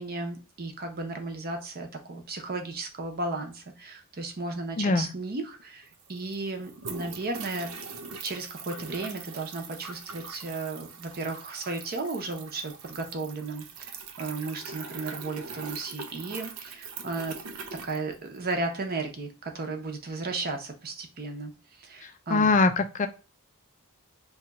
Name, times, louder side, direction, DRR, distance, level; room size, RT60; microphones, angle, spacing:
voice 1, 0.0-7.7 8.2-17.4 17.8-21.5 21.8-22.5, right 3 dB, 45° right, 0.7 m, -34 dB
voice 2, 4.8-5.1 22.0-23.1, left 3 dB, 35° left, 0.4 m, -23 dB
sound 1, 5.6-5.7 5.9-18.7, right 5 dB, 80° right, 0.5 m, -42 dB
2.8 x 2.3 x 3.9 m
head